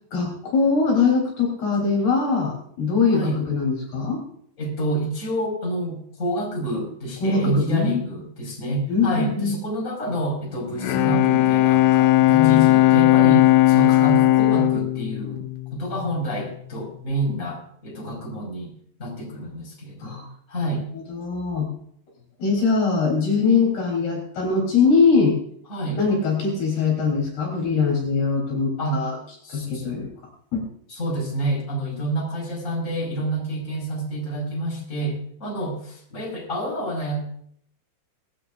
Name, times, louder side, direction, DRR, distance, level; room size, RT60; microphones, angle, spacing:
voice 1, 0.1-4.2 7.2-8.0 8.9-9.6 12.3-12.7 20.0-20.3 21.1-21.7 22.4-25.4 26.0-29.1 29.5-30.1 30.5-30.7, left 4 dB, 60° left, -1 dB, 5.5 m, -22 dB
voice 2, 4.6-18.7 19.0-20.2 20.5-20.9 25.7-26.0 28.8-29.1 29.4-29.9 30.9-37.3, right 1 dB, 15° left, -1 dB, 5.5 m, -28 dB
Bowed string instrument, 10.6-16.3, left 17 dB, 80° left, 2.9 m, -17 dB
19.5 x 16.5 x 2.6 m, 0.64 s
omnidirectional pair, 5.3 m